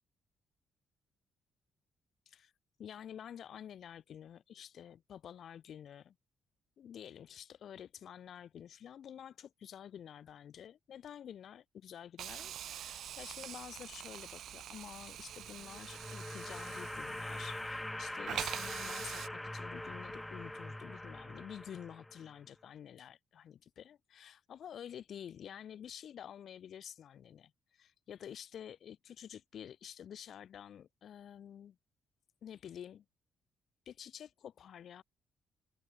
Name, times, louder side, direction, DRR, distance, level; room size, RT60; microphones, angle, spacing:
voice 1, 2.8-6.1 6.8-31.8 32.4-33.0 33.9-35.0, left 9 dB, 65° left, 7.1 m, -50 dB
Hiss, 12.2-17.9 18.3-19.3, right 11 dB, 70° right, 7.2 m, -45 dB
sound 1, 15.3-22.4, left 1 dB, 10° left, 1.1 m, -43 dB
cardioid pair, 90°, 0 cm